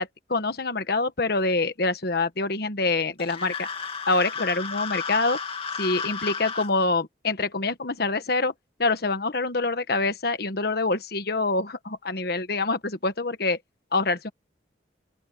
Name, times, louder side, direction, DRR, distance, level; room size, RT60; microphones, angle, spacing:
voice 1, 0.0-3.7 4.1-5.4 5.8-8.5 8.8-13.6 13.9-14.3, left 3 dB, 60° left, 1.3 m, -25 dB
sound 1, 3.2-6.7, left 5 dB, 30° left, 2.3 m, -33 dB
open air
head